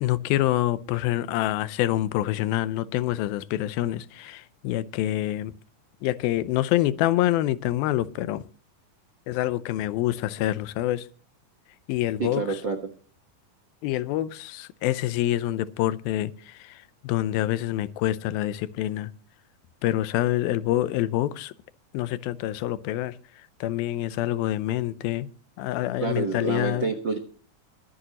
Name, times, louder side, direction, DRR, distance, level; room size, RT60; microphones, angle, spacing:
voice 1, 0.0-5.5 6.0-8.4 9.3-11.1 11.9-12.4 13.8-19.1 19.8-21.5 21.9-23.1 23.6-25.3 25.6-26.9, left 14 dB, 85° left, 2.5 m, -26 dB
voice 2, 12.2-12.8 26.0-27.2, right 3 dB, 65° right, 1.1 m, -27 dB
23.5 x 8.9 x 2.9 m
omnidirectional pair, 4.2 m